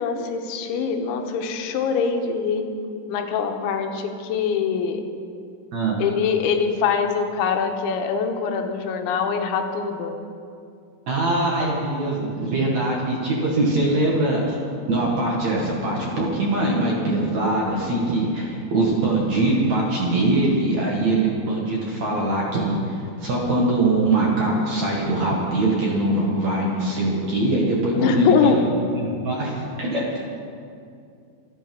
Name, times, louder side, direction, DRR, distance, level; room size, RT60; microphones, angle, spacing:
voice 1, 0.0-2.7 3.1-5.0 6.0-10.2 27.9-28.7, left 6 dB, 85° left, 5 dB, 3.4 m, -23 dB
voice 2, 5.7-6.0 11.1-14.5 14.9-28.6 28.9-30.2, right 2 dB, 50° right, -3 dB, 2.3 m, -22 dB
26.0 x 8.9 x 5.4 m, 2.4 s
omnidirectional pair, 5.3 m